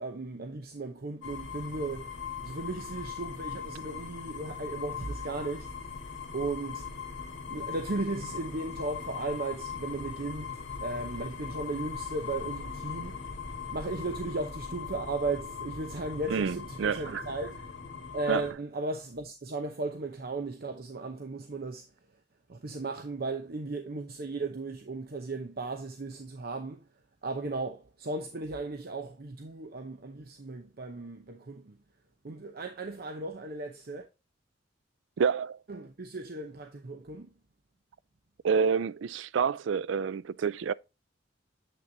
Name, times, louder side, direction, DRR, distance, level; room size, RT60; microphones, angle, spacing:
voice 1, 0.0-2.1 2.4-5.7 6.3-6.9 7.5-13.2 13.7-17.6 18.1-21.9 22.5-26.9 27.2-31.8 32.2-34.1 35.7-37.3, right 3 dB, 55° right, 0.8 m, -36 dB
sound 1, 1.2-18.5, left 6 dB, 75° left, 1.6 m, -40 dB
voice 2, 16.3-17.2 18.3-18.4 35.2-35.6 38.4-40.7, right 6 dB, 70° right, 0.4 m, -28 dB
7.8 x 6.1 x 2.7 m
head